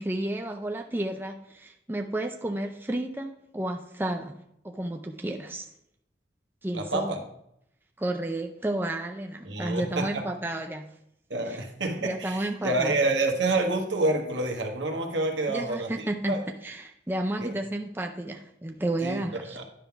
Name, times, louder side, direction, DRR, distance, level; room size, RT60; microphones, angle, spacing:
voice 1, 0.0-4.4 4.6-5.7 6.6-7.2 8.0-10.9 11.4-11.6 12.0-13.0 15.5-19.6, right 1 dB, 10° right, 3 dB, 0.5 m, -32 dB
voice 2, 6.7-7.2 9.4-10.2 11.3-15.9 16.3-16.4 17.4-17.5 19.0-19.6, right 2 dB, 90° right, 3 dB, 1.3 m, -28 dB
10.0 x 3.7 x 5.7 m, 0.77 s
head